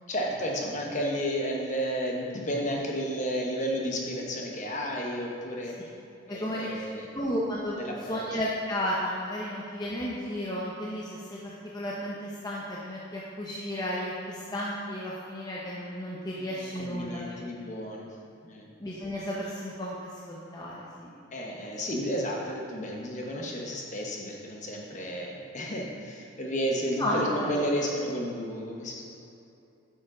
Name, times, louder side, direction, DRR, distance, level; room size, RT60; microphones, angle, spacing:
voice 1, 0.1-5.7 6.3-7.1 7.7-8.4 16.4-18.1 18.4-18.7 21.3-29.0, equal, 35° left, 0 dB, 1.1 m, -32 dB
voice 2, 6.3-7.8 8.1-17.4 18.8-19.9 20.3-21.1 27.0-27.6, equal, 20° left, -5 dB, 0.7 m, -33 dB
8.8 x 6.6 x 3.8 m, 2.7 s
head